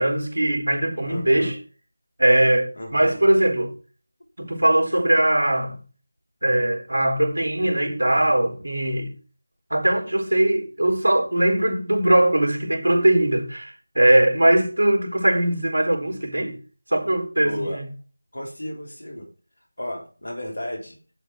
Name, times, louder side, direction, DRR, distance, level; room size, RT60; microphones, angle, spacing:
voice 1, 0.0-1.6 2.2-3.7 4.4-5.8 6.4-9.1 9.7-16.6 16.9-17.8, right 1 dB, 85° right, 3.2 m, -20 dB
voice 2, 1.0-1.5 2.8-3.2 17.4-17.8 18.3-19.3 19.8-21.0, left 1 dB, 80° left, 3.8 m, -33 dB
7.4 x 7.3 x 4.9 m
figure-of-eight pair, 170°, 0 cm